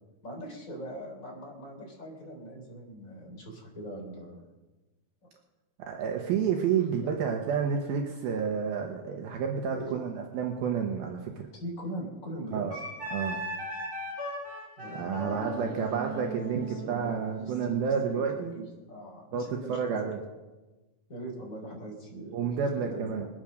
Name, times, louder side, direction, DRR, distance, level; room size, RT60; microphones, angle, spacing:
voice 1, 0.2-4.5 5.2-5.3 7.0-7.1 9.7-10.0 11.5-12.7 14.8-16.0 16.4-20.1 21.1-23.3, right 1 dB, 20° left, -1 dB, 3.6 m, -41 dB
voice 2, 5.8-11.5 12.5-12.8 13.1-13.4 14.9-18.6 19.3-20.2 22.3-23.3, right 7 dB, 75° right, 2 dB, 2.8 m, -30 dB
Wind instrument woodwind instrument, 12.7-18.1, right 1 dB, 30° right, 6.2 m, -38 dB
22.0 x 8.8 x 6.4 m, 1.2 s
omnidirectional pair, 4.5 m